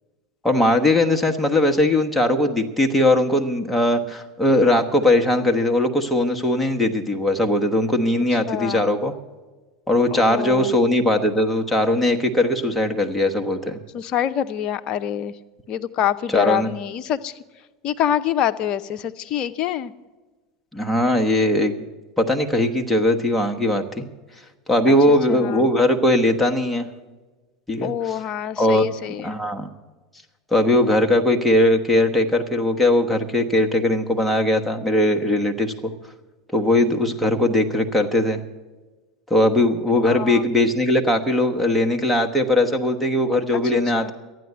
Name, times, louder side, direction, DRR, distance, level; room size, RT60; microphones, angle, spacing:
voice 1, 0.4-9.1 9.9-13.8 16.3-16.7 20.7-21.8 22.2-24.0 24.7-26.9 27.7-28.2 28.6-28.9 29.2-29.7 30.5-35.9 36.5-38.4 39.3-44.1, left 1 dB, 5° left, 2 dB, 1.2 m, -19 dB
voice 2, 8.5-8.9 10.1-10.8 13.9-15.3 15.7-17.3 17.8-19.9 24.9-25.6 27.8-29.4 40.1-40.4 43.6-44.1, left 10 dB, 40° left, 13 dB, 0.6 m, -26 dB
13.0 x 9.3 x 7.8 m, 1.2 s
figure-of-eight pair, 80°, 2 cm